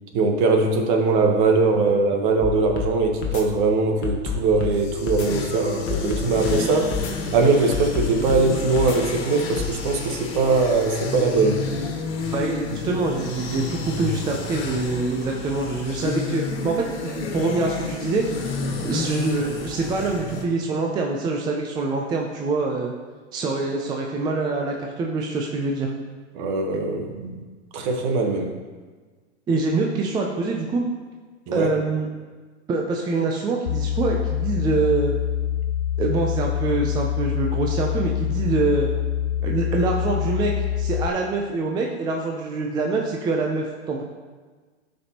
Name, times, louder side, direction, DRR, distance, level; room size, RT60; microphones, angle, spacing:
voice 1, 0.1-7.0 7.3-11.6 26.3-27.4 27.7-28.5 31.5-31.7, right 3 dB, 45° right, 3 dB, 1.3 m, -21 dB
sound 1, 2.4-2.9 3.2-3.4 4.0-4.8 5.1-5.3 5.9-6.6 6.9-7.1 7.7-8.5 8.8-9.0 9.6-9.7, left 7 dB, 30° left, 1.1 m, -27 dB
sound 2, 4.5-20.4, left 4 dB, 55° left, 1.7 m, -30 dB
voice 2, 12.3-18.3 18.8-22.9 23.3-25.9 29.5-30.9 31.5-32.1 32.7-35.1 36.0-38.9 39.4-44.0, right 3 dB, 10° right, 0 dB, 0.5 m, -25 dB
sound 3, 33.7-41.1, left 10 dB, 75° left, 0.5 m, -25 dB
12.0 x 5.3 x 2.9 m, 1.4 s
hypercardioid pair, 130°, 35 cm